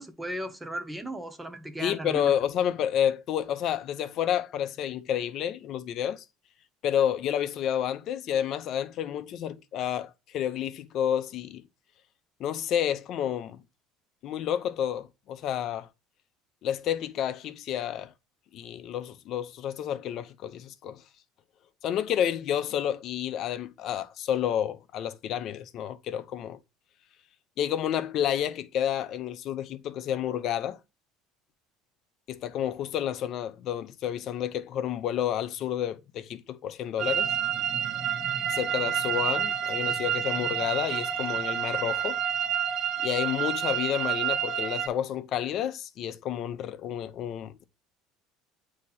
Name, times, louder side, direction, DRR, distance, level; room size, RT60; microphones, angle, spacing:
voice 1, 0.0-2.3, right 1 dB, 10° right, 1.0 m, -36 dB
voice 2, 1.8-6.2 6.8-11.6 12.4-13.6 14.2-15.9 16.6-18.1 18.5-21.0 21.8-26.6 27.6-30.8 32.3-37.3 38.5-42.2 43.0-47.6, left 10 dB, 55° left, 0.6 m, -30 dB
sound 1, 37.0-44.9, right 9 dB, 55° right, 0.8 m, -29 dB
8.4 x 2.9 x 4.0 m
supercardioid pair, 100°, 0 cm